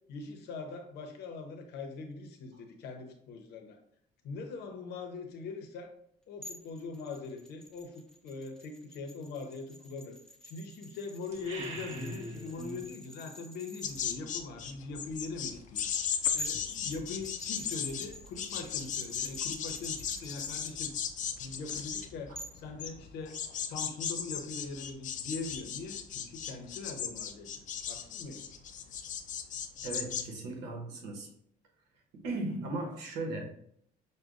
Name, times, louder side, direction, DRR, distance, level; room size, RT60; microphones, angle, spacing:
voice 1, 0.1-3.8 4.2-5.9 6.3-10.2 10.4-20.9 21.4-23.4 23.7-28.5, left 3 dB, 75° left, 4 dB, 0.8 m, -42 dB
sound 1, 6.4-14.1 16.0-16.1 16.4-20.7 22.4-22.6, equal, 5° left, 0.6 m, -48 dB
sound 2, 11.3-12.9, right 1 dB, 40° right, 0.9 m, -41 dB
sound 3, 13.8-30.2, left 8 dB, 50° left, 0.4 m, -36 dB
voice 2, 29.8-31.3 32.1-33.5, right 2 dB, 85° right, 2 dB, 1.0 m, -37 dB
6.3 x 2.2 x 2.4 m, 0.68 s
cardioid pair, 110°, 17 cm